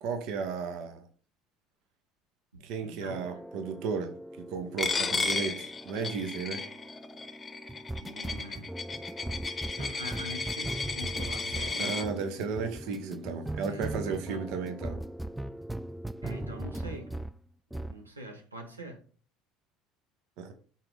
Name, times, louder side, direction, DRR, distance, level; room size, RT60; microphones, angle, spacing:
voice 1, 0.0-1.1 2.6-4.1 4.5-6.6 11.8-15.0 20.4-20.5, right 5 dB, 60° right, 0.9 m, -34 dB
voice 2, 2.8-3.3 8.0-8.7 9.4-12.0 12.8-12.9 13.6-14.5 16.2-17.2 17.7-19.0, right 1 dB, 90° right, 1.0 m, -44 dB
sound 1, 3.1-17.4 17.7-18.0, right 1 dB, 5° right, 0.3 m, -39 dB
Coin (dropping), 4.8-12.0, left 4 dB, 25° left, 0.8 m, -34 dB
5.8 x 3.9 x 5.1 m
figure-of-eight pair, 65°, 0 cm